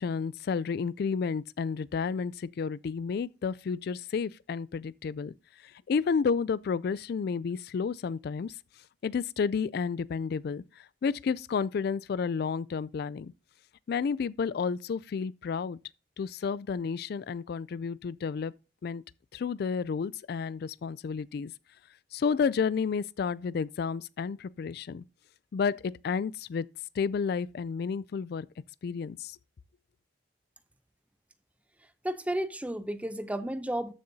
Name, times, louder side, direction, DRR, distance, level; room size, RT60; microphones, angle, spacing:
voice 1, 0.0-5.3 5.9-8.5 9.0-10.6 11.0-13.3 13.9-15.8 16.2-18.5 18.8-19.0 19.3-21.5 22.1-25.0 25.5-26.7 27.0-28.5 28.8-29.3, left 5 dB, 60° left, 0.3 m, -31 dB
voice 2, 32.0-33.9, right 1 dB, 10° right, 0.7 m, -32 dB
13.5 x 6.6 x 2.7 m
head